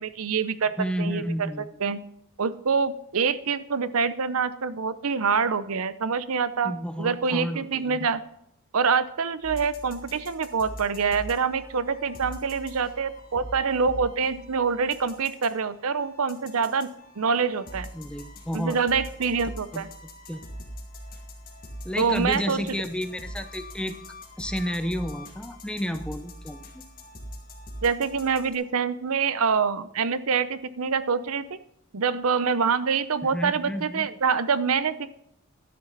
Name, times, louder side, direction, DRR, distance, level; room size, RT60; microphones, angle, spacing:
voice 1, 0.0-0.7 1.0-1.5 1.8-2.0 2.4-8.2 8.7-16.9 17.2-17.9 18.5-19.9 22.0-22.6 27.8-31.6 31.9-35.1, right 5 dB, 75° right, 15 dB, 0.6 m, -25 dB
voice 2, 0.8-1.7 6.6-8.0 17.9-18.8 19.7-19.9 20.3-20.4 21.8-23.9 24.4-26.8 33.2-34.1, equal, 5° left, 8 dB, 0.7 m, -31 dB
sound 1, 9.4-28.6, equal, 40° left, 2.3 m, -43 dB
12.0 x 10.5 x 4.0 m, 0.75 s
head